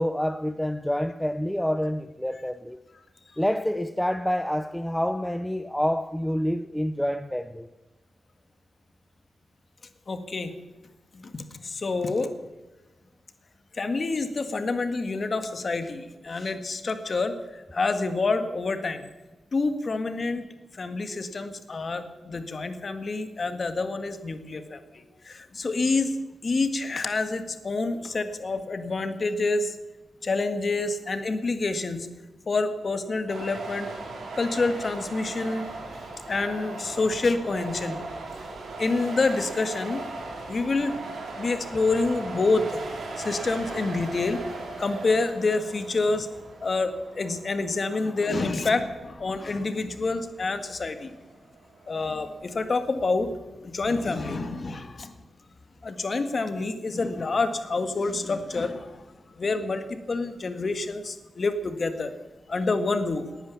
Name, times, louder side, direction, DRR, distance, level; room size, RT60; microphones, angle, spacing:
voice 1, 0.0-2.8 3.4-7.7, equal, 5° left, 0.6 m, -27 dB
voice 2, 10.1-10.5 11.1-12.3 13.8-19.0 19.5-20.4 20.8-24.8 25.2-29.7 30.2-32.1 32.5-33.9 34.4-35.7 36.3-38.0 38.8-40.1 40.5-41.0 41.4-42.8 43.2-44.4 44.8-46.3 46.6-51.1 51.9-55.1 55.8-59.0 59.4-62.1 62.5-63.2, left 3 dB, 45° left, 1.7 m, -27 dB
sound 1, 33.3-52.9, right 2 dB, 80° right, 4.4 m, -38 dB
19.0 x 10.0 x 7.1 m
wide cardioid pair, 105°, 0 cm